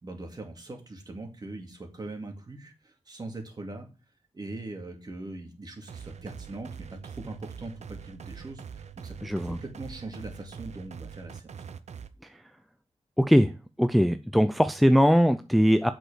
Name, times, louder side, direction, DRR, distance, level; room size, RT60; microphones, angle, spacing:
voice 1, 0.0-3.9 4.3-11.5, right 2 dB, 35° right, 2.4 m, -41 dB
sound 1, 5.9-12.1, right 7 dB, 90° right, 0.8 m, -43 dB
voice 2, 9.2-9.6 13.2-13.5 13.8-15.9, equal, ahead, 0.4 m, -21 dB
8.1 x 6.3 x 6.3 m
wide cardioid pair, 160°, 11 cm